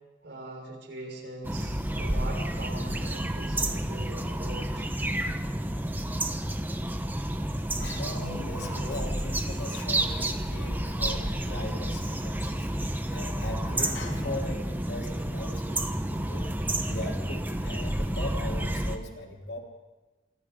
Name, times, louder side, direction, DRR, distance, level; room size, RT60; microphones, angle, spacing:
voice 1, 0.2-4.8, right 1 dB, 70° right, 0 dB, 6.3 m, -41 dB
sound 1, 1.4-19.0, right 1 dB, 10° right, 1.1 m, -30 dB
voice 2, 7.7-12.7 13.1-16.5 16.9-19.6, left 1 dB, 70° left, 0 dB, 3.6 m, -39 dB
sound 2, 8.2-11.4, left 1 dB, 35° left, 3.6 m, -56 dB
28.5 x 24.5 x 3.9 m, 1.2 s
head